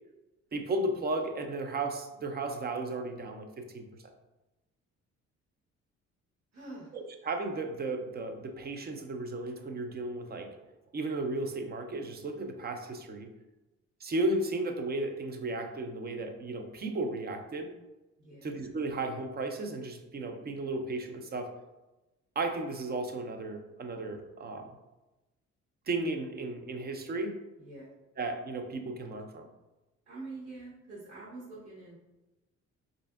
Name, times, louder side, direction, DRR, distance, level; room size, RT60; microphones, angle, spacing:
voice 1, 0.5-4.1 6.9-10.5 10.9-13.3 14.0-17.7 18.4-21.5 22.4-24.7 25.9-27.4 28.2-29.5, right 2 dB, 35° right, 6 dB, 0.5 m, -34 dB
voice 2, 6.5-6.9 18.2-18.5 27.6-27.9 30.1-32.0, right 2 dB, 55° right, -6 dB, 1.1 m, -45 dB
4.2 x 2.6 x 2.3 m, 1.0 s
cardioid pair, 90°, 30 cm